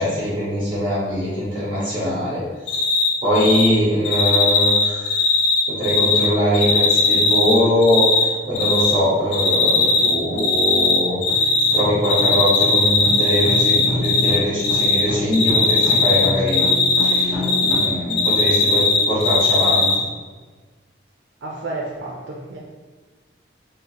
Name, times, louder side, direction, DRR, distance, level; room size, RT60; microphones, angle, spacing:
voice 1, 0.0-2.8 3.2-5.2 5.7-16.7 17.0-19.9, equal, 25° right, -8 dB, 1.3 m, -22 dB
Cricket, 2.7-3.1 3.3-3.7 4.0-6.2 6.5-8.2 8.5-8.9 9.3-10.1 10.4-11.8 12.0-14.3 14.6-15.0 15.3-17.8 18.1-19.9, left 4 dB, 70° left, 0.7 m, -18 dB
sound 1, 7.1-7.2 7.7-7.9 8.3-17.8, left 1 dB, ahead, 1.2 m, -30 dB
voice 2, 21.4-22.6, right 2 dB, 75° right, -2 dB, 0.5 m, -31 dB
3.7 x 2.8 x 2.8 m, 1.4 s
head